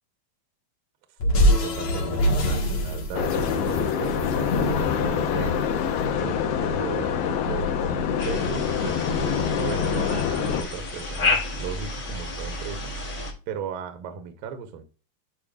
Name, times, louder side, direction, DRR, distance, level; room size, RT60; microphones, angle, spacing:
sound 1, 1.2-5.6, equal, 60° left, 2.7 m, -24 dB
voice 1, 1.4-9.1 9.5-12.9 13.5-14.8, right 7 dB, 75° right, 2.4 m, -37 dB
sound 2, 3.1-10.6, left 7 dB, 80° left, 2.8 m, -25 dB
sound 3, 8.2-13.3, left 3 dB, 35° left, 1.4 m, -31 dB
11.0 x 4.6 x 2.4 m
omnidirectional pair, 4.4 m